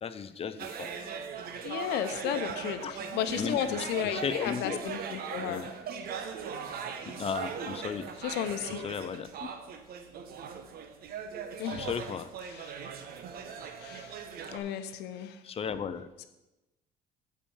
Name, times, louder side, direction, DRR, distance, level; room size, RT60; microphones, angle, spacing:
voice 1, 0.0-0.9 2.8-2.9 3.4-3.6 4.1-4.8 5.5-5.7 7.1-8.1 8.8-9.3 11.7-12.3 15.4-16.1, left 6 dB, 35° left, 12 dB, 0.6 m, -35 dB
sound 1, 0.6-14.6, right 6 dB, 65° right, 1.1 m, -39 dB
voice 2, 1.6-5.7 8.2-8.9 11.6-11.9 12.4-12.9 13.5-15.4, left 9 dB, 85° left, 10 dB, 0.8 m, -34 dB
8.6 x 5.0 x 7.0 m, 1.0 s
cardioid pair, 110°, 17 cm